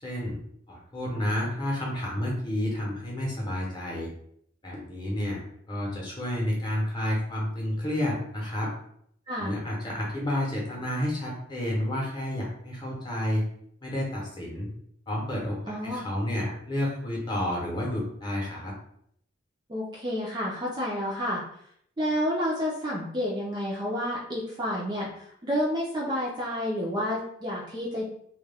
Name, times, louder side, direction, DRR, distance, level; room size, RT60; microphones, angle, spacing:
voice 1, 0.0-0.4 0.7-4.1 4.6-8.7 9.4-13.4 13.8-14.7 15.1-18.7, left 1 dB, 20° left, -3 dB, 0.7 m, -30 dB
voice 2, 15.7-16.1 19.7-21.4 22.0-28.0, equal, 20° right, -4 dB, 0.4 m, -30 dB
2.3 x 2.2 x 3.3 m, 0.69 s
head